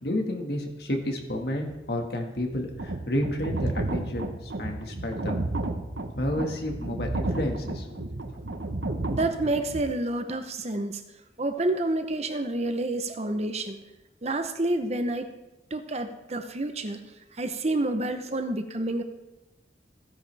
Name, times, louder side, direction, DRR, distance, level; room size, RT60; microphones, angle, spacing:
voice 1, 0.0-5.3 6.2-8.1, left 1 dB, 60° left, 3 dB, 1.8 m, -31 dB
sound 1, 2.6-9.8, right 2 dB, 85° right, 1.1 m, -32 dB
voice 2, 9.1-11.0 11.4-13.8 14.2-15.3 15.7-17.0 17.4-19.0, right 2 dB, 35° right, 8 dB, 0.8 m, -28 dB
15.5 x 9.9 x 3.4 m, 1.0 s
head